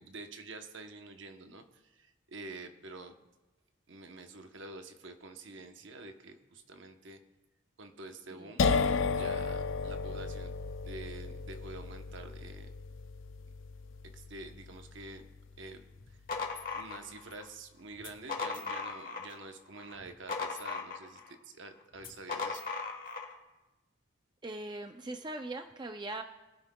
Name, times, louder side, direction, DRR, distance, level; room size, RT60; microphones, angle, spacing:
voice 1, 0.0-3.1 3.9-7.2 7.8-8.7 9.1-10.5 10.8-12.7 14.0-15.3 15.6-15.8 16.1-16.2 16.7-22.6, right 3 dB, 65° right, 6 dB, 0.9 m, -47 dB
sound 1, 8.6-16.2, left 4 dB, 70° left, 0.5 m, -34 dB
sound 2, 16.0-17.4 18.0-19.4 19.8-21.3 22.0-23.3, left 4 dB, 40° left, 1.4 m, -38 dB
voice 2, 24.4-26.2, right 2 dB, 20° right, 5 dB, 0.4 m, -40 dB
22.0 x 9.7 x 2.2 m, 1.1 s
head